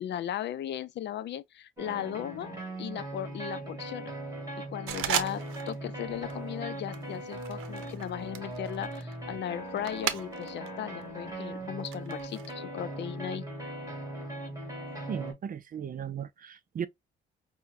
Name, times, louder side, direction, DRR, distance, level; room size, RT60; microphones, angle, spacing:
voice 1, 0.0-2.5 2.8-4.1 4.6-13.5, left 11 dB, 65° left, 0.5 m, -37 dB
sound 1, 1.8-15.3, right 1 dB, 15° right, 2.4 m, -39 dB
sound 2, 4.9-5.8 6.1-6.4 6.9-10.7 11.0-12.5, right 10 dB, 85° right, 0.7 m, -36 dB
voice 2, 15.1-16.9, right 8 dB, 45° right, 0.5 m, -36 dB
5.8 x 2.2 x 2.5 m
cardioid pair, 90°, 20 cm